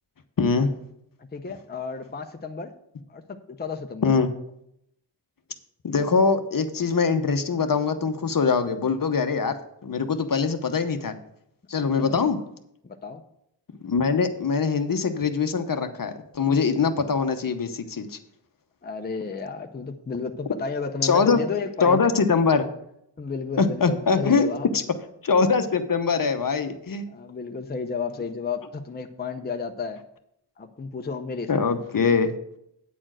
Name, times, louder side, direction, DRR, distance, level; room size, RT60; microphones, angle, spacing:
voice 1, 0.4-0.7 4.0-4.3 5.8-9.5 9.8-11.1 11.7-12.4 13.8-18.2 21.0-21.4 21.8-22.7 23.6-24.5 25.2-27.1 31.5-32.3, left 5 dB, 50° left, 9 dB, 0.9 m, -22 dB
voice 2, 1.2-2.7 3.1-4.1 11.8-12.3 12.8-13.2 18.8-22.0 23.2-24.7 27.1-30.0 30.6-31.5, left 5 dB, 20° left, 5 dB, 0.7 m, -32 dB
9.2 x 4.3 x 7.4 m, 0.76 s
wide cardioid pair, 80°, 44 cm